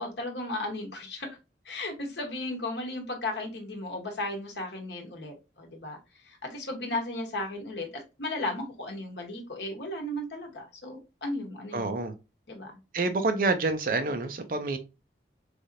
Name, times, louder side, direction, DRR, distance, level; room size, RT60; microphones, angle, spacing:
voice 1, 0.0-1.4 1.6-6.0 6.2-11.9 12.5-12.7, left 2 dB, 75° left, 1.0 m, -35 dB
voice 2, 11.7-12.1 12.9-14.8, right 3 dB, 50° right, 0.5 m, -27 dB
3.3 x 2.7 x 2.5 m
head